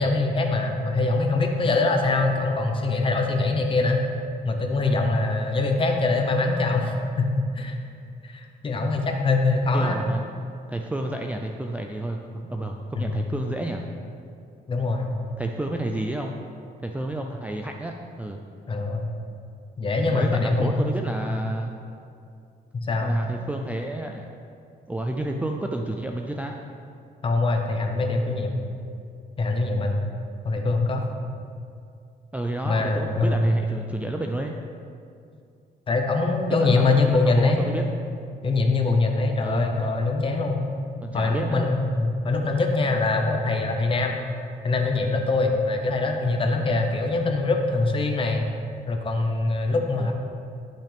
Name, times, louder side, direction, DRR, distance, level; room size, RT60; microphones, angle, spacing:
voice 1, 0.0-4.0 4.4-6.9 7.4-7.8 8.2-10.0 13.0-13.1 14.7-15.1 18.7-19.1 19.8-20.7 22.7-23.2 27.2-28.5 29.4-30.0 30.4-31.1 32.6-33.5 35.9-37.6 38.4-40.6 41.1-44.2 44.6-48.5 48.9-50.1, left 3 dB, 30° left, 3 dB, 0.9 m, -23 dB
voice 2, 9.7-10.2 10.7-13.8 15.4-16.3 16.8-18.4 20.1-21.7 23.0-24.3 24.9-26.6 32.3-34.6 36.5-37.8 39.4-39.8 41.0-41.7 50.0-50.1, right 1 dB, 10° right, 2 dB, 0.4 m, -30 dB
11.5 x 5.7 x 3.5 m, 2.4 s
cardioid pair, 140°, 17 cm